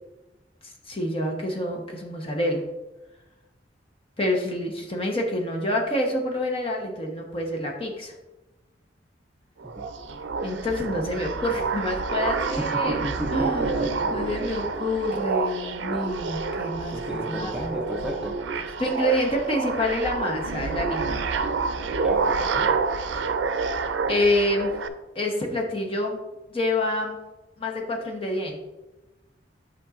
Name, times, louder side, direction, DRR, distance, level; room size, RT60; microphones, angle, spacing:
voice 1, 0.9-2.6 4.2-8.1 10.4-13.0 13.3-17.5 18.8-21.2 24.1-24.7 25.1-26.2 26.5-27.2 27.6-28.6, left 1 dB, 30° left, 1 dB, 1.0 m, -27 dB
voice 2, 9.6-10.2 12.6-14.4 16.9-18.4 22.0-22.8, right 1 dB, 5° right, -1 dB, 0.5 m, -34 dB
sound 1, 9.6-24.9, right 4 dB, 80° right, 0.5 m, -28 dB
8.4 x 5.2 x 2.5 m, 1.1 s
head